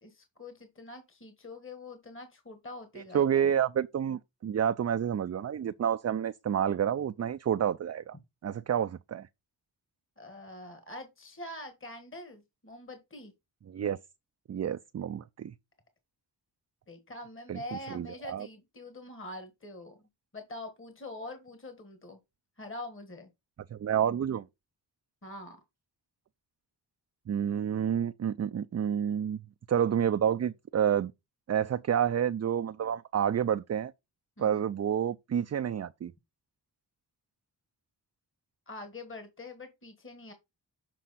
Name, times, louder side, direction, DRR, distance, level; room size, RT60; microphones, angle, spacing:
voice 1, 0.0-3.5 10.2-13.3 16.9-20.0 20.3-22.2 22.6-23.3 25.2-25.6 34.4-34.6 38.7-40.3, left 2 dB, 30° left, 1.5 m, -44 dB
voice 2, 3.0-8.2 8.4-9.3 13.7-14.0 14.5-15.5 17.5-17.6 17.9-18.5 23.7-24.5 27.3-29.4 29.7-31.1 31.5-33.9 34.4-36.1, right 9 dB, 40° right, 0.4 m, -29 dB
7.6 x 4.5 x 4.1 m
cardioid pair, 65°, 43 cm